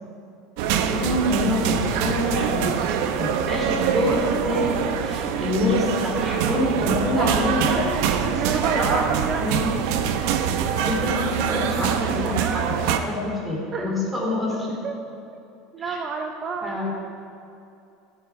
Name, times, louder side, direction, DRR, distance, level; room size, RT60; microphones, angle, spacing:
sound 1, 0.6-13.0, right 8 dB, 65° right, 0.8 m, -24 dB
voice 1, 0.8-2.8 3.2-7.9 8.3-9.0 9.4-9.7 10.8-14.8 15.8-16.0 16.6-16.9, left 1 dB, 10° right, -3 dB, 2.9 m, -26 dB
voice 2, 8.4-9.4 12.4-12.6 13.7-14.1 14.5-14.9 15.7-16.8, right 5 dB, 30° right, 5 dB, 0.6 m, -30 dB
15.0 x 8.9 x 4.6 m, 2.7 s
supercardioid pair, 150°, 0 cm